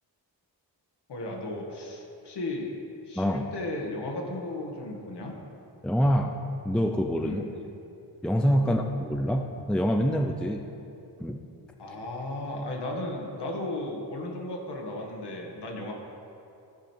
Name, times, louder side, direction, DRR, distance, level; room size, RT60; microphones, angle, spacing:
voice 1, 1.1-2.8 3.0-5.3 7.2-7.5 8.6-8.8 11.8-15.9, left 1 dB, 70° left, 0 dB, 1.7 m, -35 dB
voice 2, 5.8-6.3 6.6-7.4 8.2-10.6 11.2-11.4, equal, ahead, 4 dB, 0.4 m, -25 dB
14.0 x 5.1 x 4.4 m, 2.7 s
cardioid pair, 95°, 42 cm